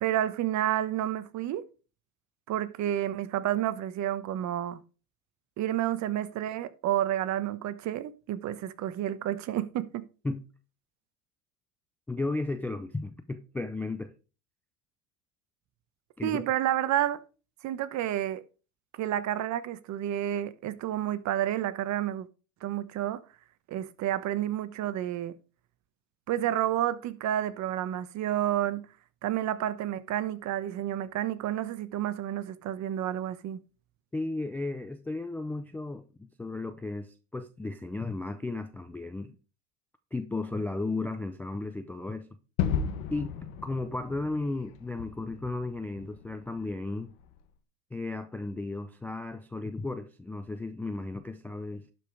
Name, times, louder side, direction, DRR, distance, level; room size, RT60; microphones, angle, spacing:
voice 1, 0.0-1.6 2.5-4.8 5.6-10.0 16.2-17.2 17.6-18.4 18.9-22.3 22.6-23.2 23.7-25.4 26.3-28.8 29.2-33.6, right 12 dB, 40° right, 1.0 m, -30 dB
voice 2, 12.1-14.1 16.2-16.4 34.1-39.4 40.1-42.4 43.1-47.1 47.9-51.8, left 2 dB, 5° left, 0.3 m, -34 dB
Gunshot gunfire / Fireworks / Boom, 42.6-47.4, left 7 dB, 75° left, 1.7 m, -35 dB
11.5 x 5.2 x 4.7 m
supercardioid pair, 110°, 43 cm